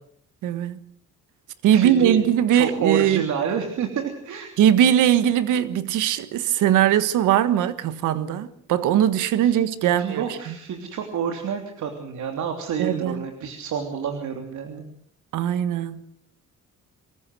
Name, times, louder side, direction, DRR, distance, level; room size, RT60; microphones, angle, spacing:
voice 1, 0.4-0.8 1.6-3.2 4.6-10.5 12.8-13.2 15.3-16.0, right 10 dB, 90° right, 1.5 m, -20 dB
voice 2, 1.7-2.2 2.5-4.5 9.4-14.8, right 7 dB, 70° right, 3.1 m, -29 dB
25.5 x 15.0 x 8.0 m
cardioid pair, 90°, 30 cm